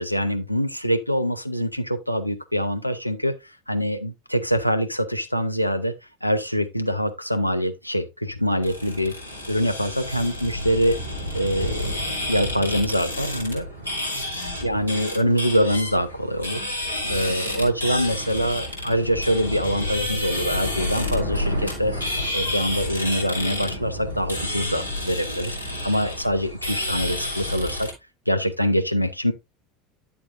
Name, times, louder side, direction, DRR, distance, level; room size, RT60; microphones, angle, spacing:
voice 1, 0.0-3.3 3.7-5.9 6.2-9.1 9.5-11.0 11.3-11.9 12.3-13.7 14.6-21.9 22.3-27.9 28.3-29.3, equal, 90° left, 0.8 m, -24 dB
sound 1, 8.6-27.9, left 1 dB, 85° right, 3.0 m, -30 dB
10.0 x 7.0 x 2.5 m
figure-of-eight pair, 75°, 0 cm